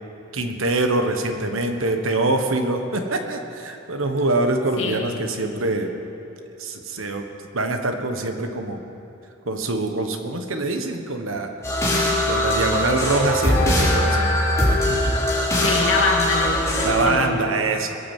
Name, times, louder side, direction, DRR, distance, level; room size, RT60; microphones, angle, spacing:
voice 1, 0.3-5.9 6.6-7.2 7.5-8.8 9.4-11.5 12.2-14.3 14.9-15.2 16.8-18.0, right 2 dB, 85° right, 5 dB, 1.4 m, -24 dB
voice 2, 4.8-5.1 15.5-17.3, left 3 dB, 70° left, 0 dB, 2.2 m, -25 dB
sound 1, 11.6-17.0, left 1 dB, 15° left, 3.6 m, -21 dB
21.5 x 8.7 x 7.5 m, 2.8 s
head